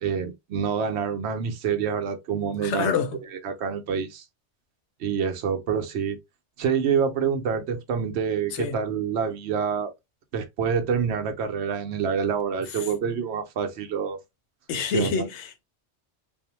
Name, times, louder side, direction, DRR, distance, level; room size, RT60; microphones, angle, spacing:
voice 1, 0.0-2.9 3.3-4.2 5.0-6.2 6.6-9.9 10.3-14.2 14.9-15.2, right 7 dB, 70° right, 0.8 m, -27 dB
voice 2, 2.6-3.2 8.5-8.8 12.7-12.9 14.7-15.6, left 6 dB, 75° left, 0.9 m, -27 dB
2.5 x 2.0 x 2.8 m
omnidirectional pair, 1.2 m